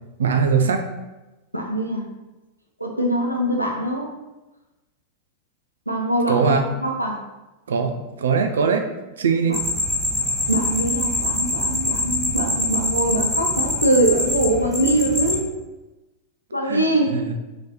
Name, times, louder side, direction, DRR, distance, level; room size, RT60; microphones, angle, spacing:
voice 1, 0.2-0.9 6.3-6.7 7.7-8.8 9.2-9.6 16.6-16.9 17.1-17.3, right 5 dB, 65° right, 6 dB, 0.4 m, -21 dB
voice 2, 1.5-2.1 2.8-4.1 5.9-6.5 6.8-7.2 10.5-15.5 16.5-17.2, right 1 dB, 90° left, 1 dB, 0.6 m, -22 dB
sound 1, 9.5-15.4, left 2 dB, 5° right, 1.1 m, -24 dB
3.1 x 3.0 x 4.0 m, 1.1 s
figure-of-eight pair, 90°, 0 cm